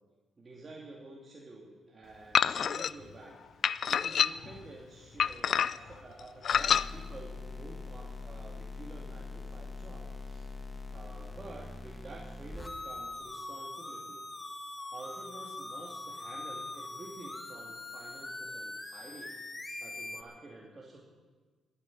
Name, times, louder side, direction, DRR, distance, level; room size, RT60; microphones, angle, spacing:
voice 1, 0.4-10.5 10.9-14.2 14.9-19.4 19.8-21.0, right 2 dB, 30° right, -3 dB, 2.5 m, -49 dB
sound 1, 2.3-2.9 3.6-4.6 5.2-5.9 6.4-6.9, left 8 dB, 55° left, 0.4 m, -27 dB
sound 2, 6.5-20.2, left 2 dB, 15° left, 1.6 m, -42 dB
13.0 x 9.8 x 9.9 m, 1.4 s
cardioid pair, 90°, 0 cm